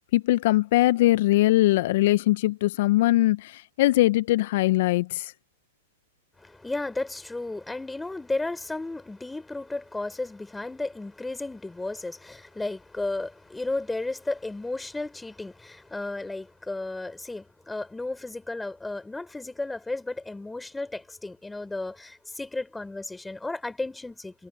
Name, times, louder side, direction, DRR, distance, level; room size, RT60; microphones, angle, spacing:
voice 1, 0.0-5.3, left 16 dB, 60° left, 0.5 m, -21 dB
voice 2, 6.4-24.5, left 2 dB, 5° left, 4.0 m, -34 dB
hypercardioid pair, 120°, 0 cm